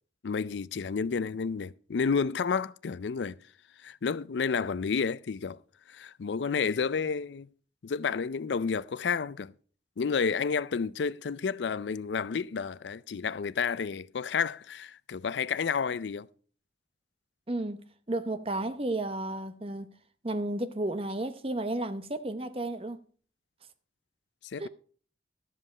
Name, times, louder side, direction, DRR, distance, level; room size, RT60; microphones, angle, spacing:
voice 1, 0.2-3.4 3.8-5.6 5.9-7.5 7.8-9.5 10.0-16.3 24.4-24.7, left 5 dB, 85° left, 0.4 m, -30 dB
voice 2, 17.5-19.9 20.2-23.0 24.6-24.7, right 1 dB, 30° right, 0.8 m, -33 dB
12.5 x 7.6 x 4.9 m
head